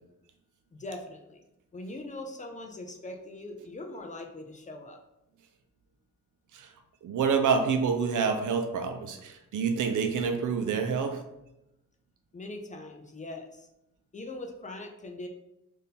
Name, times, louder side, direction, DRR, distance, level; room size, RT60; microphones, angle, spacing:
voice 1, 0.7-1.4 1.7-5.0 12.3-13.7 14.1-15.3, left 2 dB, 25° left, 3 dB, 0.4 m, -41 dB
voice 2, 7.0-11.2, right 5 dB, 75° right, 6 dB, 0.6 m, -27 dB
3.6 x 2.6 x 4.1 m, 0.86 s
wide cardioid pair, 165°, 31 cm